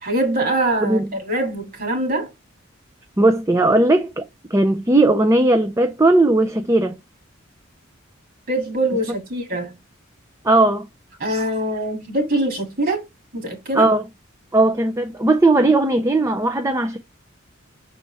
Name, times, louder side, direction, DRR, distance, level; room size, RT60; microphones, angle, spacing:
voice 1, 0.0-2.3 8.5-9.8 11.2-13.0 13.3-13.9, right 1 dB, 45° right, 2.4 m, -23 dB
voice 2, 3.2-4.3 4.5-7.0 10.4-10.9 13.7-14.0 14.5-17.0, right 2 dB, 15° right, 0.5 m, -17 dB
6.7 x 4.3 x 3.3 m
head